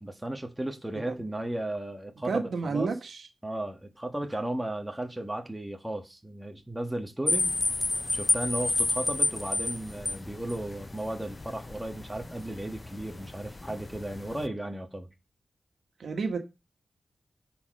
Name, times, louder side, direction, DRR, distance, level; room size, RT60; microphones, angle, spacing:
voice 1, 0.0-2.9 3.4-7.6 8.1-15.1, right 1 dB, 10° right, 1.6 m, -35 dB
voice 2, 2.2-3.3 16.0-16.4, right 4 dB, 75° right, 1.5 m, -30 dB
sound 1, 7.3-14.5, left 2 dB, 35° left, 0.5 m, -31 dB
9.7 x 4.5 x 5.4 m
cardioid pair, 55°, 0 cm